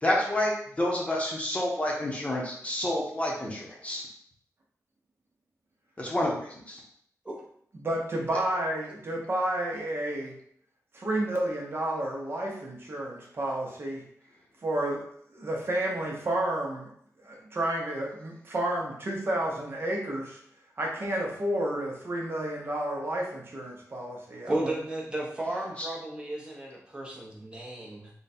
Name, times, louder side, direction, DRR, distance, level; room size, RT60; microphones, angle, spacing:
voice 1, 0.0-4.1 6.0-6.8 25.8-25.9, left 1 dB, 20° left, -2 dB, 0.8 m, -29 dB
voice 2, 7.7-10.4 10.9-14.0 14.6-15.1 15.3-16.9 17.2-20.4 20.8-24.7, right 1 dB, 45° right, -2 dB, 0.9 m, -31 dB
voice 3, 24.5-28.1, right 1 dB, 15° right, -2 dB, 0.9 m, -34 dB
3.8 x 2.2 x 4.2 m, 0.65 s
wide cardioid pair, 145°, 6 cm